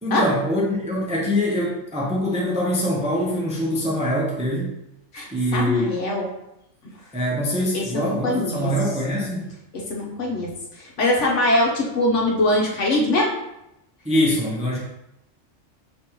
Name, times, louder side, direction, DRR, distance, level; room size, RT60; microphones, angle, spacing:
voice 1, 0.0-4.7 5.3-5.9 7.1-9.5 14.0-14.8, equal, 5° right, -4 dB, 0.5 m, -23 dB
voice 2, 5.1-6.3 7.7-8.7 9.7-10.5 10.8-13.4, left 1 dB, 65° left, -1 dB, 1.2 m, -22 dB
5.1 x 3.0 x 3.0 m, 0.85 s
omnidirectional pair, 1.3 m